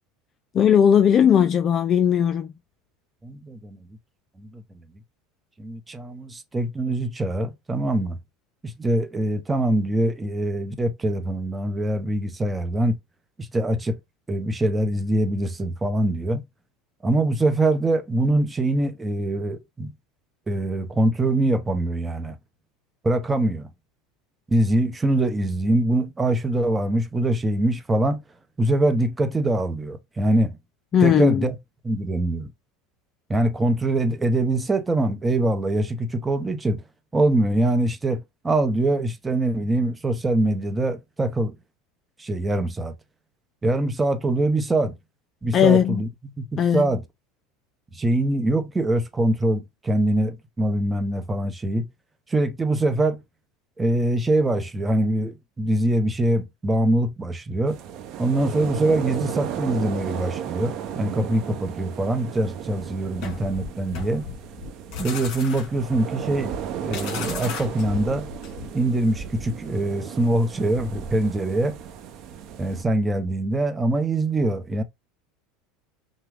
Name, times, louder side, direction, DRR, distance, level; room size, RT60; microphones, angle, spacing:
voice 1, 0.5-2.5 30.9-31.5 45.5-46.0 46.6-46.9, left 8 dB, 40° left, 0.4 m, -18 dB
voice 2, 3.2-3.8 4.4-4.6 5.6-8.2 8.6-13.0 13.4-14.0 14.3-16.4 17.0-19.9 20.5-22.4 23.0-23.7 24.5-28.2 28.6-30.5 31.0-31.5 31.8-32.5 33.3-36.8 37.1-41.5 42.2-42.9 43.6-45.0 45.4-46.1 46.4-47.0 47.9-51.9 52.3-53.2 53.8-57.8 58.2-64.2 65.0-66.5 66.8-68.3 68.7-71.8 72.6-74.8, right 1 dB, 15° right, 0.8 m, -23 dB
sound 1, 57.7-72.8, right 9 dB, 55° right, 0.8 m, -34 dB
sound 2, 63.2-68.9, left 6 dB, 60° left, 1.7 m, -36 dB
5.9 x 2.2 x 3.5 m
supercardioid pair, 100°, 0 cm